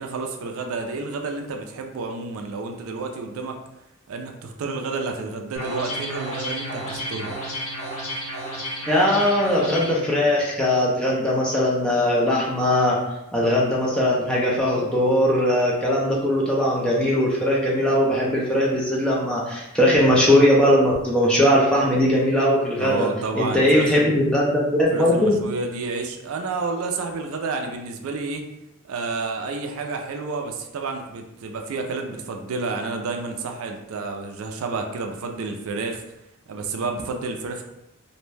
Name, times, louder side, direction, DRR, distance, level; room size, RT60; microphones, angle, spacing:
voice 1, 0.0-3.6 4.1-7.3 22.8-24.1 24.9-28.4 28.8-36.0 36.5-37.6, right 3 dB, 75° right, 3 dB, 0.4 m, -30 dB
sound 1, 5.5-9.9, equal, 80° left, 0.9 m, -31 dB
voice 2, 8.9-13.0 13.3-23.1 23.3-25.3, left 1 dB, 5° left, -5 dB, 0.4 m, -20 dB
2.6 x 2.1 x 3.2 m, 0.89 s
head